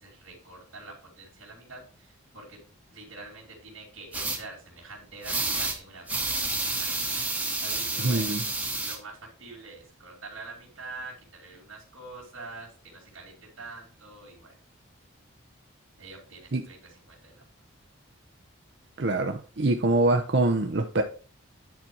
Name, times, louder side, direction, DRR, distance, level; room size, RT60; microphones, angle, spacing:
voice 1, 0.0-2.6 2.9-6.9 7.3-8.4 8.8-14.5 16.0-16.8 17.1-17.4, right 3 dB, 75° right, 2.5 m, -45 dB
sound 1, 4.1-4.4 5.2-5.8 6.1-9.0, right 2 dB, 5° right, 1.0 m, -29 dB
voice 2, 8.0-8.4 16.5-16.6 19.0-21.0, right 2 dB, 55° right, 0.7 m, -24 dB
9.5 x 4.4 x 4.5 m
head